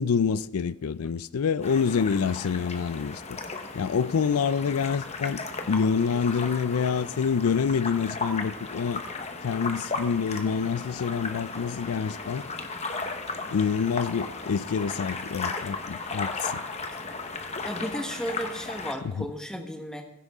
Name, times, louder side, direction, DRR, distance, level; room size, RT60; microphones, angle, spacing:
voice 1, 0.0-3.4 3.7-9.0 9.4-12.4 13.5-16.6 19.2-19.3, left 6 dB, 80° left, 0.4 m, -27 dB
sound 1, 1.6-18.9, left 3 dB, 30° left, 1.0 m, -35 dB
voice 2, 17.6-20.0, equal, 5° left, 1.3 m, -34 dB
16.0 x 15.5 x 3.6 m
head